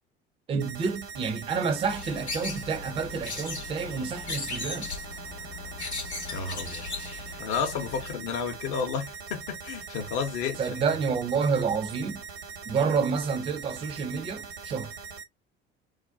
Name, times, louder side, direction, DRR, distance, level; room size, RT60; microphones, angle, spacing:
voice 1, 0.5-4.9 10.6-12.2 12.7-14.9, right 5 dB, 20° right, 0.4 m, -29 dB
sound 1, 0.6-15.2, right 5 dB, 70° right, 0.9 m, -42 dB
sound 2, 1.8-8.1, left 3 dB, 90° left, 0.8 m, -38 dB
voice 2, 6.3-6.8 7.4-10.9, left 6 dB, 55° left, 0.7 m, -32 dB
2.4 x 2.1 x 2.4 m
figure-of-eight pair, 60°, 32 cm